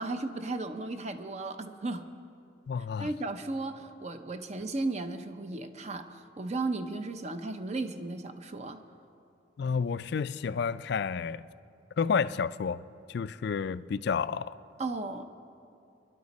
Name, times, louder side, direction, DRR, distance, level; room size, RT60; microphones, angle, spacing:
voice 1, 0.0-2.0 3.0-8.8 14.8-15.3, right 2 dB, 35° right, 0.7 m, -35 dB
voice 2, 2.7-3.1 9.6-11.5 12.0-12.8 13.1-14.5, left 6 dB, 55° left, 0.3 m, -30 dB
24.0 x 11.5 x 4.2 m
head